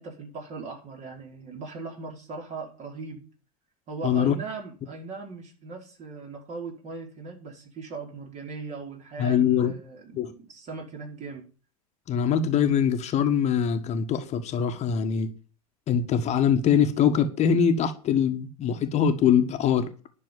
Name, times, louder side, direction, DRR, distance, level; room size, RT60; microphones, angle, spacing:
voice 1, 0.0-3.2 3.9-11.5, right 4 dB, 40° right, 4.9 m, -39 dB
voice 2, 4.0-4.4 9.2-9.7 10.1-10.3 12.1-15.3 15.9-19.9, left 8 dB, 35° left, 1.5 m, -23 dB
11.0 x 6.2 x 9.2 m
figure-of-eight pair, 75°, 19 cm